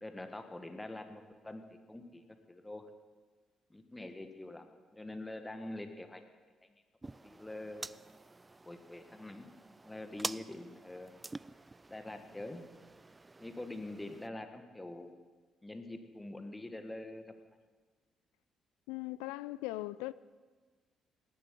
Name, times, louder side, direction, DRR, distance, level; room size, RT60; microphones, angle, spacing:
voice 1, 0.0-2.9 3.7-6.2 7.0-7.9 8.6-9.5 9.8-11.1 11.9-12.6 13.4-15.1 15.6-17.2, left 1 dB, 15° left, 1.8 m, -45 dB
sound 1, 7.0-14.3, right 2 dB, 25° right, 0.4 m, -47 dB
voice 2, 18.9-20.1, left 18 dB, 75° left, 0.4 m, -39 dB
18.0 x 7.8 x 8.5 m
hypercardioid pair, 45°, 0 cm